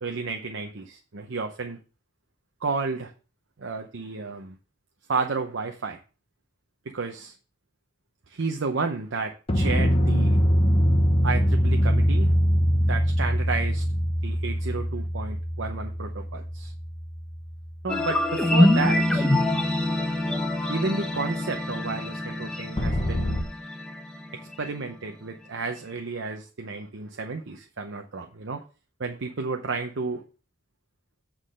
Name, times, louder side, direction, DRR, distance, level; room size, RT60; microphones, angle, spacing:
voice 1, 0.0-1.8 2.6-3.1 3.6-4.5 5.1-6.0 6.9-7.4 8.3-10.4 11.2-12.3 12.8-13.8 14.2-16.7 17.8-19.3 20.7-23.4 24.6-28.6 29.0-30.2, right 4 dB, 65° right, 5 dB, 0.7 m, -32 dB
sound 1, 9.5-17.8 22.8-23.4, equal, 30° left, 1.0 m, -23 dB
sound 2, 17.9-24.9, left 1 dB, 5° left, 0.9 m, -25 dB
8.8 x 3.8 x 6.4 m, 0.36 s
head